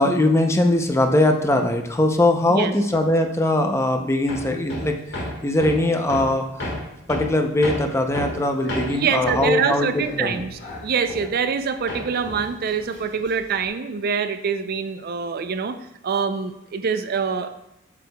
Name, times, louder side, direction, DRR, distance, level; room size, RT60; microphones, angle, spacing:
voice 1, 0.0-5.2 5.4-6.6 7.1-10.5, left 1 dB, 15° left, 5 dB, 0.5 m, -21 dB
Hammer, 4.3-11.6 11.9-13.6, left 1 dB, 60° left, 1.6 m, -33 dB
voice 2, 8.9-15.8 16.0-17.5, right 6 dB, 50° right, 10 dB, 0.4 m, -25 dB
8.2 x 6.6 x 2.2 m, 0.88 s
head